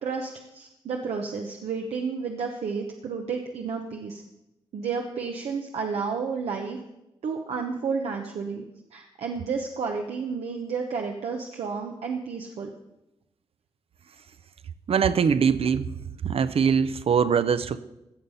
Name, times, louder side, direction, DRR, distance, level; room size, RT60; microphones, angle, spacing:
voice 1, 0.0-4.2 4.7-6.8 7.2-8.7 8.9-12.7, right 5 dB, 90° right, 2 dB, 1.0 m, -31 dB
voice 2, 14.9-15.9 16.2-17.8, right 6 dB, 65° right, 14 dB, 0.7 m, -22 dB
16.0 x 6.6 x 5.6 m, 0.92 s
cardioid pair, 60°, 10 cm